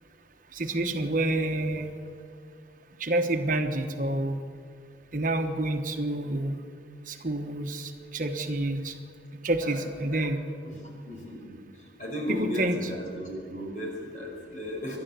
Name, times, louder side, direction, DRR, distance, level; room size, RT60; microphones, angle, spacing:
voice 1, 0.5-1.9 3.0-4.4 5.1-6.6 7.1-8.9 9.4-10.4 12.3-12.8, right 2 dB, 45° right, 5 dB, 1.2 m, -28 dB
voice 2, 11.0-15.0, left 1 dB, 45° left, 0 dB, 5.7 m, -35 dB
28.0 x 11.5 x 8.2 m, 2.2 s
head